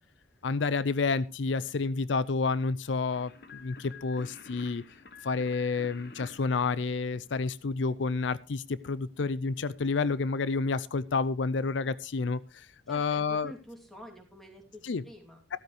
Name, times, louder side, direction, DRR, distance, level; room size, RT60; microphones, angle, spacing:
voice 1, 0.4-4.8 5.2-13.5 14.8-15.0 15.5-15.6, left 4 dB, 75° left, 18 dB, 0.5 m, -30 dB
sound 1, 3.1-7.6, left 4 dB, 60° left, 1.4 m, -50 dB
voice 2, 12.9-15.4, equal, ahead, 2 dB, 2.8 m, -48 dB
13.5 x 13.0 x 3.2 m, 0.30 s
head